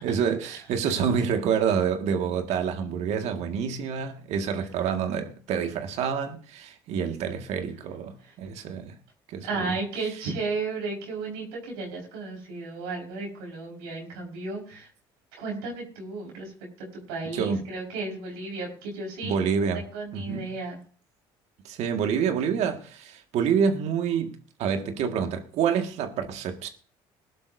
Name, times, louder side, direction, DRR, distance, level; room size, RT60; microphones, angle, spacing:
voice 1, 0.0-9.0 9.3-9.8 17.3-17.7 19.2-19.9 20.1-20.5 21.6-26.7, right 7 dB, 70° right, 1.9 m, -27 dB
voice 2, 9.4-14.9 15.4-16.5 16.8-19.3 19.9-20.8, right 3 dB, 90° right, 5.0 m, -34 dB
21.0 x 11.5 x 2.7 m
supercardioid pair, 75°, 12 cm